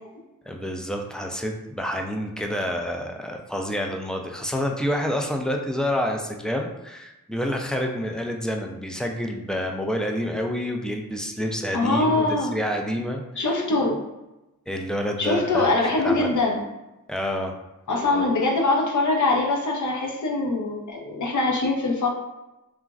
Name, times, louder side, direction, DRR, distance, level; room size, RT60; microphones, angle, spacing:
voice 1, 0.5-13.5 14.7-15.7 16.0-16.2 17.1-17.5, equal, ahead, 2 dB, 0.3 m, -28 dB
voice 2, 11.7-12.5 13.4-14.0 15.2-16.6 17.9-22.1, left 2 dB, 60° left, 0 dB, 0.7 m, -23 dB
2.9 x 2.4 x 2.4 m, 0.98 s
cardioid pair, 75°, 33 cm